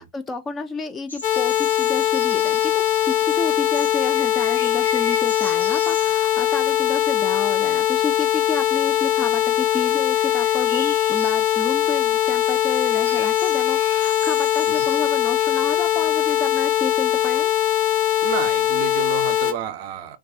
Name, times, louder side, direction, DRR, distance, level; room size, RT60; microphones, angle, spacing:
voice 1, 0.0-17.5, left 3 dB, 15° left, 0.3 m, -31 dB
sound 1, 1.1-17.5, left 1 dB, 85° left, 0.7 m, -40 dB
sound 2, 1.2-19.5, left 12 dB, 60° left, 1.0 m, -21 dB
voice 2, 18.2-20.2, right 10 dB, 45° right, 0.5 m, -30 dB
2.2 x 2.2 x 2.5 m
figure-of-eight pair, 90°, 0 cm